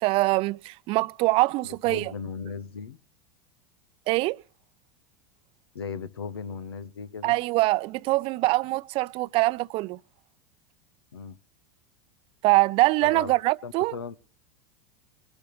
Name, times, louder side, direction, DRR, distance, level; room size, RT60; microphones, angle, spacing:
voice 1, 0.0-2.1 4.1-4.4 7.2-10.0 12.4-13.9, right 21 dB, 50° right, 0.6 m, -23 dB
voice 2, 1.6-3.0 5.7-7.4 11.1-11.4 13.0-13.3 13.6-14.2, left 6 dB, 85° left, 1.0 m, -37 dB
21.5 x 11.5 x 3.1 m
hypercardioid pair, 90°, 13 cm